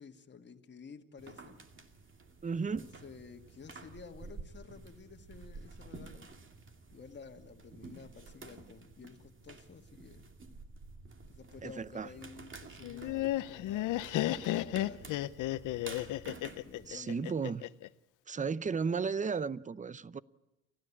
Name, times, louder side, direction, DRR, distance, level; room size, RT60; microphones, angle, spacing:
voice 1, 0.0-1.6 2.5-6.3 6.9-10.3 11.3-15.3 16.6-17.3, left 5 dB, 35° left, 1.9 m, -52 dB
sound 1, 1.2-17.0, right 4 dB, 40° right, 2.5 m, -51 dB
voice 2, 2.4-2.9 11.6-12.1 16.9-17.7 18.3-20.2, right 5 dB, 25° right, 0.7 m, -34 dB
Laughter, 12.8-17.9, left 15 dB, 85° left, 0.7 m, -33 dB
29.0 x 13.5 x 8.5 m
cardioid pair, 90°, 30 cm